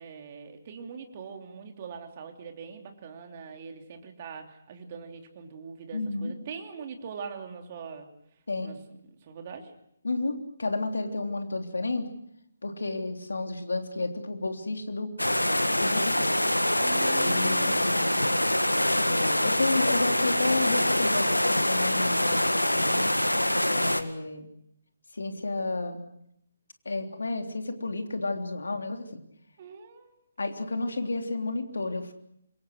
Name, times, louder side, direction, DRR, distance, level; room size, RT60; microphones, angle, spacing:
voice 1, 0.0-8.1 8.6-8.8 9.2-9.7 16.8-18.1 29.6-30.2, right 6 dB, 35° right, 4 dB, 3.1 m, -42 dB
voice 2, 5.9-6.3 8.5-8.7 10.0-12.1 12.6-15.1 15.7-16.3 17.1-18.2 18.9-23.0 23.6-24.5 25.1-26.0 26.9-29.2 30.4-32.1, left 2 dB, 65° left, 5 dB, 3.4 m, -31 dB
sound 1, 15.2-24.0, left 1 dB, 90° left, 1.8 m, -25 dB
27.5 x 23.0 x 6.4 m, 0.75 s
figure-of-eight pair, 140°, 0 cm